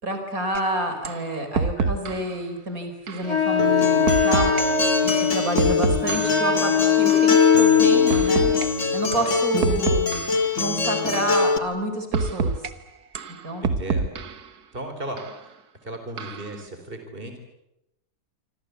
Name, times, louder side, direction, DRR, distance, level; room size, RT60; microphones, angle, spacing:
voice 1, 0.0-4.5 5.0-8.5 8.9-10.2 10.6-12.6 13.4-13.7, right 1 dB, 65° right, 6 dB, 5.0 m, -28 dB
sound 1, 0.5-0.6 1.0-1.2 1.5-2.3 3.1-3.3 4.1-4.6 5.1-6.5 7.1-7.3 8.1-8.7 9.1-9.3 9.6-10.5 11.1-11.4 12.1-12.7 13.1-14.5 15.2-15.3 16.2-16.5, right 4 dB, 85° right, 1.9 m, -26 dB
Wind instrument woodwind instrument, 3.2-8.8, left 8 dB, 80° left, 3.5 m, -21 dB
Acoustic guitar, 3.6-11.6, left 4 dB, 55° left, 2.2 m, -24 dB
voice 2, 13.6-14.1 14.7-15.6 15.8-17.4, right 1 dB, 35° right, 6 dB, 4.4 m, -35 dB
27.0 x 26.0 x 8.2 m, 0.85 s
omnidirectional pair, 1.6 m